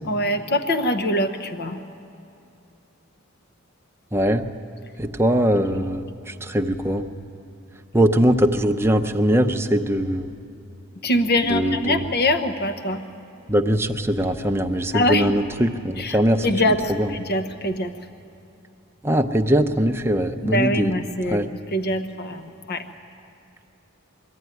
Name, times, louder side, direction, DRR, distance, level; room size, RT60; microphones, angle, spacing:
voice 1, 0.0-1.8 5.7-5.8 11.0-13.0 14.9-15.3 16.0-17.9 20.4-21.4 21.7-22.8, left 1 dB, 50° left, 8 dB, 0.9 m, -23 dB
voice 2, 4.1-4.5 5.0-7.0 7.9-10.3 11.5-12.0 13.5-16.4 17.0-17.1 19.0-20.9 21.3-21.5, equal, 10° right, 5 dB, 0.7 m, -21 dB
22.5 x 14.5 x 9.4 m, 2.8 s
head